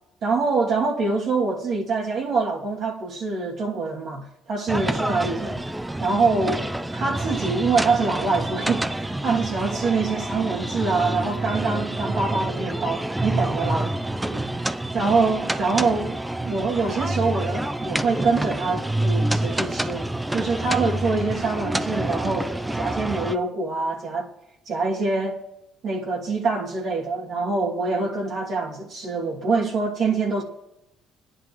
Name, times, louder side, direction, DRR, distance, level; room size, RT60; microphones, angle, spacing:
voice 1, 0.2-5.6 6.0-13.9 14.3-16.2 16.4-24.3 24.7-25.4 25.8-30.4, right 4 dB, 50° right, 2.6 m, -25 dB
sound 1, 4.7-23.4, right 1 dB, 5° right, 0.5 m, -27 dB
24.0 x 10.5 x 3.2 m
cardioid pair, 135°, 0 cm